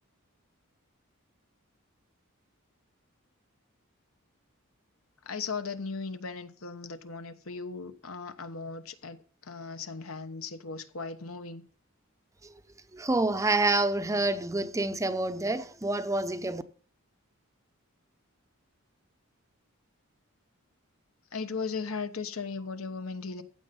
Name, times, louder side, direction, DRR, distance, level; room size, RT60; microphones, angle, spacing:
voice 1, 5.3-9.2 9.4-11.6 21.3-23.4, left 4 dB, 70° left, 1.1 m, -37 dB
voice 2, 12.9-16.6, right 2 dB, 15° right, 0.6 m, -28 dB
15.0 x 7.8 x 5.3 m
head